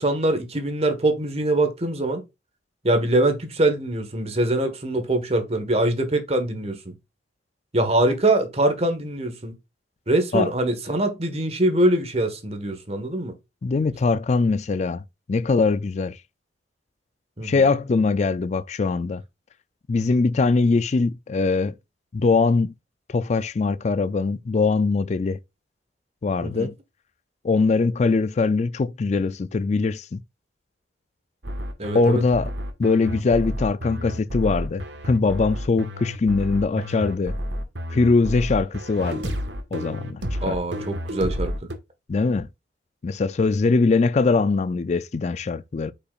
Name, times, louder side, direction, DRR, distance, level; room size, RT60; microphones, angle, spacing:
voice 1, 0.0-2.2 2.8-6.9 7.7-9.5 10.1-13.3 17.4-17.7 26.4-26.7 31.8-32.2 40.4-41.7, right 1 dB, 35° right, 1.5 m, -23 dB
voice 2, 13.6-15.0 15.3-16.2 17.4-19.2 19.9-21.7 22.1-22.7 23.1-25.4 26.2-26.7 27.4-30.2 31.9-32.5 32.8-37.3 37.9-39.4 39.7-40.6 42.1-42.5 43.0-45.9, left 4 dB, 40° left, 0.4 m, -22 dB
sound 1, 31.4-41.8, equal, 90° right, 1.5 m, -31 dB
8.1 x 5.7 x 2.4 m
head